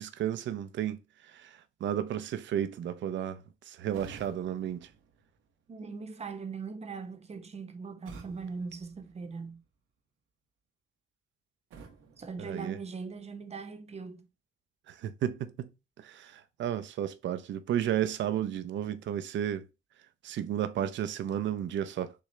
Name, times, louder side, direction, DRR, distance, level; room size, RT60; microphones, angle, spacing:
voice 1, 0.0-4.9 12.4-12.8 14.9-15.7 16.0-19.6 20.2-22.1, right 10 dB, 70° right, 0.6 m, -33 dB
sound 1, 3.9-5.9 8.1-9.8 11.7-13.3, right 4 dB, 90° right, 1.0 m, -53 dB
voice 2, 5.7-9.6 12.2-14.3, right 5 dB, 30° right, 0.9 m, -40 dB
6.7 x 2.4 x 3.2 m
cardioid pair, 90°, 20 cm